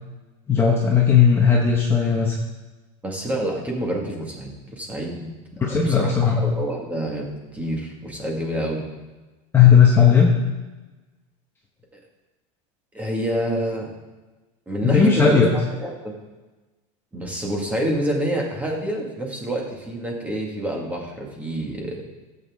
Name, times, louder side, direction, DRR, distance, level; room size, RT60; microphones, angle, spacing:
voice 1, 0.5-2.4 5.6-6.4 9.5-10.3 14.8-15.5, left 7 dB, 15° left, -2 dB, 1.1 m, -16 dB
voice 2, 3.0-5.3 5.7-7.3 7.5-8.8 12.9-13.9 14.7-15.4 15.8-16.1 17.1-22.0, right 1 dB, 10° right, 0 dB, 1.9 m, -27 dB
15.5 x 8.4 x 3.6 m, 1.2 s
supercardioid pair, 165°, 17 cm